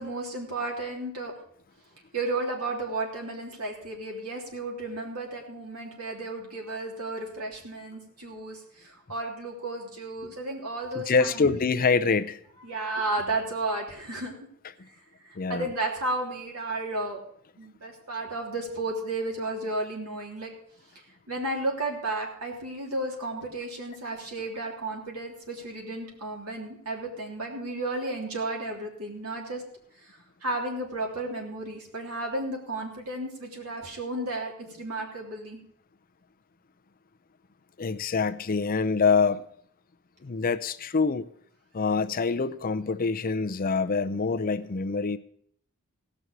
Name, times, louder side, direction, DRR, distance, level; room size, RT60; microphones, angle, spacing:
voice 1, 0.0-1.3 2.1-11.6 12.6-14.3 15.3-17.2 17.6-20.5 21.3-29.6 30.0-35.6, right 2 dB, 85° right, 3.3 m, -33 dB
voice 2, 10.9-12.4 15.4-15.7 37.8-39.4 40.2-41.2 41.7-45.2, left 4 dB, 40° left, 0.5 m, -25 dB
17.0 x 6.2 x 6.6 m
head